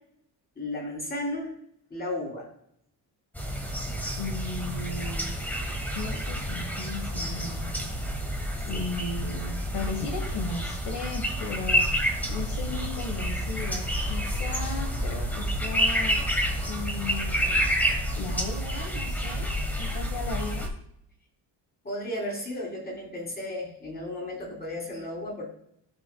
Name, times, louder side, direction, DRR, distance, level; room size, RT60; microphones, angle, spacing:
voice 1, 0.6-1.5 1.9-2.5 8.7-8.8 21.8-25.5, left 1 dB, 20° left, -2 dB, 3.5 m, -34 dB
sound 1, 3.3-20.7, equal, 5° left, 1.4 m, -29 dB
voice 2, 4.2-5.4 5.9-7.8 8.6-16.4 16.7-17.7 18.1-19.5 19.7-20.7, left 4 dB, 70° left, 3 dB, 1.4 m, -36 dB
15.5 x 6.1 x 2.3 m, 0.71 s
cardioid pair, 155°, 42 cm